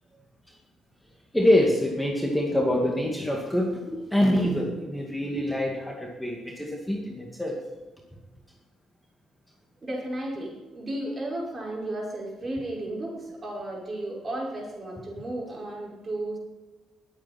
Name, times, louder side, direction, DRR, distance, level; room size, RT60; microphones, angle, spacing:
voice 1, 1.3-7.6, left 1 dB, 5° left, -1 dB, 2.2 m, -25 dB
voice 2, 9.8-16.4, right 1 dB, 30° right, -2 dB, 5.3 m, -34 dB
20.0 x 8.8 x 4.4 m, 1.2 s
cardioid pair, 90°, 0 cm